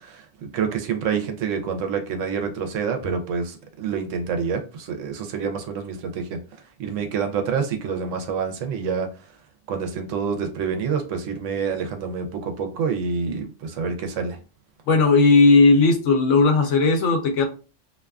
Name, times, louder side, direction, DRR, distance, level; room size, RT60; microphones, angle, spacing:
voice 1, 0.0-6.4 6.8-9.1 9.7-14.4, right 6 dB, 85° right, 1.0 m, -27 dB
voice 2, 14.9-17.4, left 3 dB, 85° left, 1.0 m, -16 dB
2.6 x 2.3 x 2.2 m
omnidirectional pair, 1.2 m